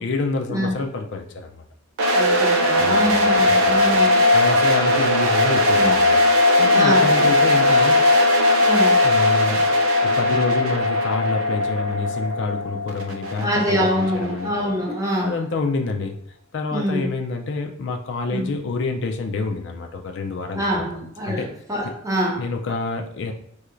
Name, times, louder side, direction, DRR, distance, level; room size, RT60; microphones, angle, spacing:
voice 1, 0.0-1.5 2.8-3.2 3.6-3.8 4.3-8.0 9.0-14.5 15.2-16.2 16.5-20.9 21.2-21.5 21.8-21.9 22.4-23.3, left 3 dB, 60° left, 3 dB, 0.4 m, -27 dB
sound 1, 2.0-14.8, left 2 dB, 85° right, 0.6 m, -18 dB
voice 2, 2.1-4.2 5.8-5.9 6.7-7.3 8.6-9.0 13.4-15.3 16.7-17.1 18.3-18.5 20.5-22.4, equal, 15° right, -1 dB, 0.7 m, -25 dB
4.3 x 2.8 x 2.5 m, 0.69 s
head